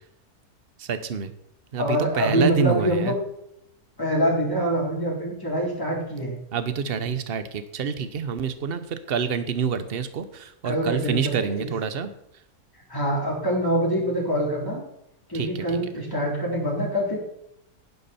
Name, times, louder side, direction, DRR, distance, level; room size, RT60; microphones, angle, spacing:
voice 1, 0.8-1.3 1.7-3.1 6.5-12.1 15.3-15.8, right 6 dB, 45° right, 11 dB, 1.0 m, -27 dB
voice 2, 1.8-3.2 4.0-6.4 10.6-11.7 12.9-14.8 15.3-17.2, equal, 15° left, -3 dB, 3.6 m, -25 dB
11.0 x 11.0 x 4.3 m, 0.77 s
omnidirectional pair, 1.6 m